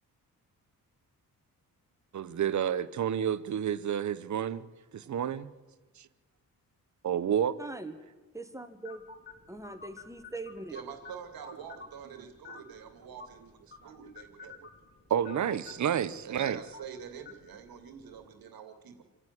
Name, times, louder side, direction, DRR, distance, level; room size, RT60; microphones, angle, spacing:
voice 1, 2.1-4.6 4.9-5.5 6.0-6.1 7.0-7.6 15.1-16.6, right 9 dB, 55° right, 15 dB, 1.0 m, -30 dB
voice 2, 7.6-8.0 8.3-9.0 9.5-10.8, right 2 dB, 10° right, 8 dB, 1.7 m, -41 dB
sound 1, 8.9-18.4, left 4 dB, 30° left, 3.7 m, -52 dB
voice 3, 10.7-14.5 16.2-19.0, right 7 dB, 90° right, 6 dB, 2.6 m, -46 dB
27.0 x 11.0 x 9.7 m, 1.3 s
wide cardioid pair, 135°, 35 cm